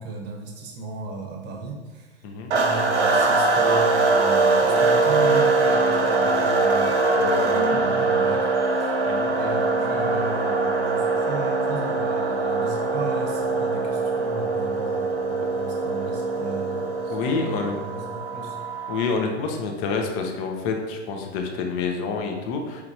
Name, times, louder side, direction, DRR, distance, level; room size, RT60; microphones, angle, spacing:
voice 1, 0.0-9.0 9.3-18.6, right 3 dB, 30° right, -1 dB, 0.8 m, -36 dB
sound 1, 2.5-19.2, right 3 dB, 70° right, 0.8 m, -22 dB
sound 2, 6.7-8.0 8.5-8.6 8.9-10.2, left 5 dB, 60° left, 1.3 m, -33 dB
voice 2, 9.1-9.4 15.4-15.5 17.1-17.7 18.9-22.8, left 4 dB, 30° left, 3 dB, 0.5 m, -28 dB
4.6 x 2.8 x 2.6 m, 1.3 s
hypercardioid pair, 110°, 35 cm